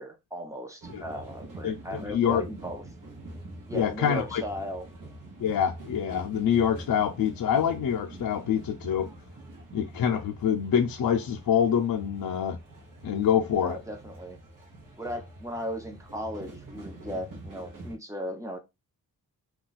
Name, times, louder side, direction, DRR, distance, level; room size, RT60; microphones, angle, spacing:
voice 1, 0.0-2.8 3.7-4.8 13.6-14.4 15.0-18.6, equal, 10° right, 0.6 m, -36 dB
sound 1, 0.8-18.0, right 1 dB, 65° right, 0.9 m, -45 dB
voice 2, 2.1-2.4 3.7-4.4 5.4-9.1 9.7-12.6 13.0-13.8, left 8 dB, 80° left, 0.5 m, -26 dB
2.3 x 2.3 x 3.9 m
wide cardioid pair, 165°, 35 cm